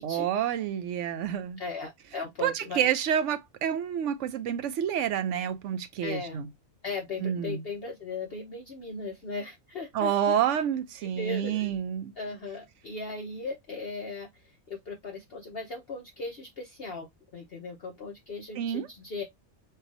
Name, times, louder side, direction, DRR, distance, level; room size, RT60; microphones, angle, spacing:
voice 1, 0.0-1.6 2.4-6.5 7.2-7.6 9.9-12.1 18.6-18.9, right 9 dB, 70° right, 0.9 m, -28 dB
voice 2, 1.6-2.9 6.0-6.4 6.8-10.3 11.1-11.7 12.2-19.2, left 3 dB, 50° left, 1.0 m, -38 dB
5.5 x 2.3 x 2.6 m
omnidirectional pair, 1.4 m